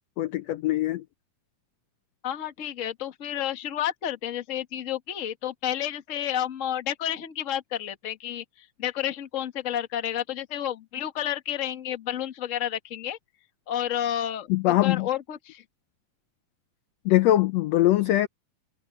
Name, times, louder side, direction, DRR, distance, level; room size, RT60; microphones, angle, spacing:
voice 1, 0.2-1.0 14.5-15.1 17.0-18.3, left 14 dB, 85° left, 1.5 m, -22 dB
voice 2, 2.2-13.2 13.7-15.6, left 11 dB, 45° left, 1.0 m, -31 dB
omnidirectional pair, 3.8 m